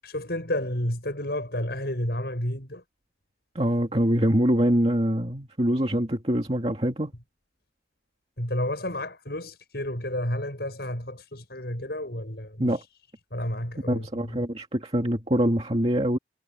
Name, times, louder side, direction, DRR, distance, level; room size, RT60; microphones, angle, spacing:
voice 1, 0.0-2.8 8.4-12.8 13.3-14.4, left 1 dB, 60° left, 7.5 m, -31 dB
voice 2, 3.5-7.1 12.6-12.8 13.9-16.2, equal, 30° right, 2.2 m, -24 dB
head